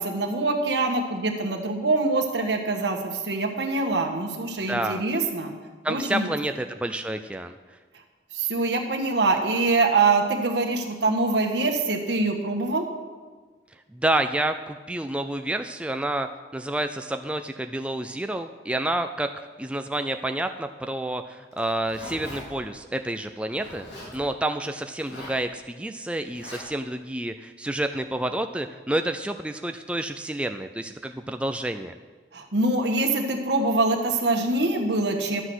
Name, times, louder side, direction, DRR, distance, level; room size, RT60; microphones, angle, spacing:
voice 1, 0.0-5.5 5.9-6.3 8.3-12.8 32.3-35.4, right 3 dB, 75° right, 4 dB, 1.5 m, -24 dB
voice 2, 4.7-5.0 5.8-7.8 13.9-23.9 24.1-31.9, right 1 dB, 5° right, 6 dB, 0.3 m, -29 dB
Zipper (clothing), 21.5-22.4 23.5-24.1 25.0-25.4 26.3-26.6, left 1 dB, 75° left, 3.5 m, -40 dB
11.5 x 7.9 x 6.2 m, 1.4 s
head